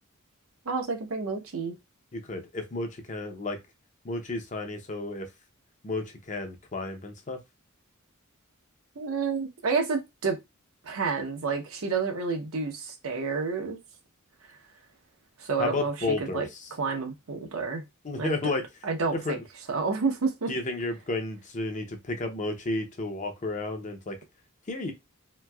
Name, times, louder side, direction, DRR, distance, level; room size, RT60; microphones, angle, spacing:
voice 1, 0.7-1.7 9.0-10.4 10.8-13.8 15.4-15.9 16.2-16.5 16.8-17.8 18.2-18.5 18.8-19.4 19.7-20.5, right 4 dB, 80° right, 0.8 m, -29 dB
voice 2, 2.1-3.6 4.0-5.3 5.8-7.4 15.6-16.7 18.0-18.6 19.2-19.4 20.5-24.2 24.7-24.9, left 2 dB, 35° left, 0.6 m, -32 dB
2.9 x 2.6 x 2.3 m
head